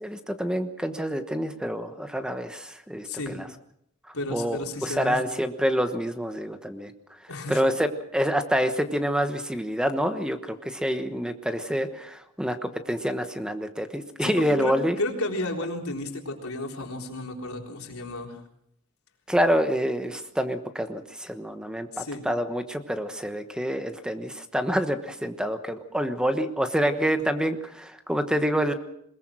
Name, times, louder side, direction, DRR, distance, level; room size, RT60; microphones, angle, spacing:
voice 1, 0.0-3.5 4.3-6.9 7.5-15.0 19.3-28.7, equal, 5° right, 8 dB, 1.1 m, -27 dB
voice 2, 3.0-3.4 4.1-5.2 7.3-7.6 14.2-18.4 21.9-22.2, left 2 dB, 80° left, 2 dB, 3.9 m, -33 dB
21.5 x 21.5 x 6.2 m, 0.74 s
head